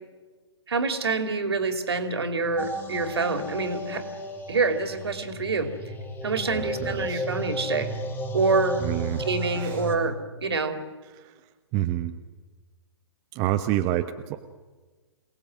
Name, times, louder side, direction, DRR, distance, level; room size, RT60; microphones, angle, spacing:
voice 1, 0.7-4.0 4.5-5.7 6.2-7.9 8.3-8.8 9.2-10.8, right 4 dB, 60° right, 8 dB, 3.0 m, -26 dB
sound 1, 2.6-10.0, equal, 15° left, 2.2 m, -34 dB
voice 2, 6.5-7.3 8.8-9.2 9.6-9.8 11.1-11.3 11.7-12.2 13.3-14.4, right 13 dB, 25° right, 7 dB, 1.0 m, -28 dB
27.5 x 19.0 x 7.8 m, 1.3 s
figure-of-eight pair, 125°, 15 cm